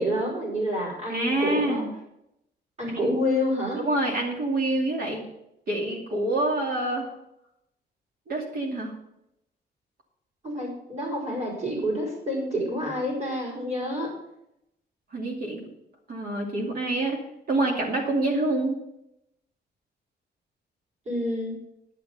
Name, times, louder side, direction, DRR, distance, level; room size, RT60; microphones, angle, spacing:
voice 1, 0.0-1.8 2.8-3.8 10.4-14.1 21.1-21.5, equal, 40° right, -3 dB, 5.1 m, -28 dB
voice 2, 1.1-1.9 3.0-3.2 3.8-5.2 5.7-7.1 8.3-8.9 15.1-15.7 16.1-17.2 17.5-18.8, right 2 dB, 55° right, 0 dB, 2.5 m, -26 dB
11.0 x 8.9 x 5.5 m, 0.82 s
wide cardioid pair, 160°, 18 cm